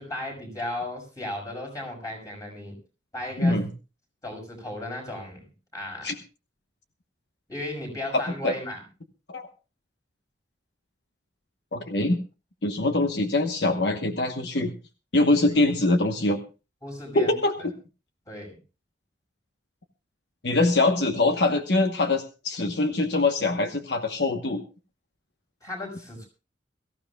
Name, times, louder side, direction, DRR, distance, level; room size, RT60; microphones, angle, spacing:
voice 1, 0.0-2.8 3.1-3.6 4.2-5.4 5.7-6.1 7.5-8.8 16.8-17.4 18.3-18.6 25.6-26.3, left 1 dB, 20° left, 1 dB, 6.0 m, -35 dB
voice 2, 3.4-3.7 6.0-6.1 8.1-8.5 9.3-9.4 11.7-12.2 12.6-14.7 15.1-16.4 17.1-17.5 20.4-24.6, left 2 dB, 70° left, 5 dB, 1.1 m, -23 dB
23.0 x 14.5 x 2.3 m, 0.32 s
head